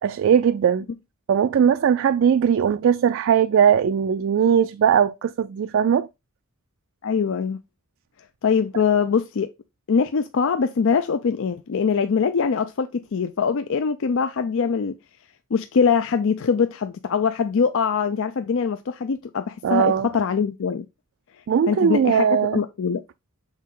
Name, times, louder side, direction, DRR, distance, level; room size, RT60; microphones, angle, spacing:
voice 1, 0.0-0.9 1.3-6.1 19.6-20.1 21.5-22.6, right 8 dB, 60° right, 0.3 m, -19 dB
voice 2, 7.0-7.6 8.4-9.5 9.9-15.0 15.5-20.9 21.7-22.3 22.5-23.0, left 6 dB, 65° left, 0.4 m, -22 dB
6.4 x 4.1 x 3.7 m
head